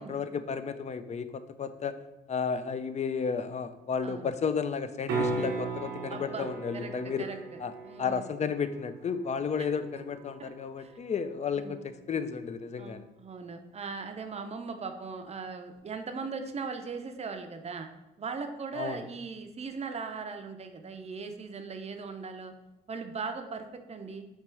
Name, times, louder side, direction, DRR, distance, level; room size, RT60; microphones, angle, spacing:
voice 1, 0.0-2.0 2.3-7.3 7.6-7.7 8.0-13.0 18.7-19.0, left 6 dB, 35° left, 11 dB, 0.4 m, -33 dB
sound 1, 5.1-11.1 15.8-15.9, right 3 dB, 90° right, 0.8 m, -37 dB
voice 2, 6.1-7.4 7.8-8.3 9.6-9.7 10.4-10.5 10.8-10.9 11.6-11.8 12.8-17.9 18.2-22.5 22.9-24.2, right 4 dB, 30° right, 6 dB, 0.5 m, -39 dB
3.3 x 3.0 x 4.4 m, 0.94 s
supercardioid pair, 60°, 20 cm